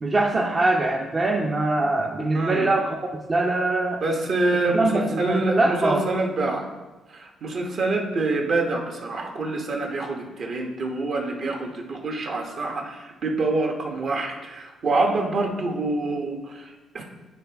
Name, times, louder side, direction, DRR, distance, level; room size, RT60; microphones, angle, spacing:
voice 1, 0.0-4.0 4.7-6.1, right 2 dB, 30° right, 0 dB, 0.5 m, -23 dB
voice 2, 2.3-2.7 4.0-6.7 7.1-17.0, right 2 dB, 55° right, 1 dB, 1.1 m, -26 dB
9.1 x 3.4 x 3.4 m, 1.1 s
cardioid pair, 90°, 0 cm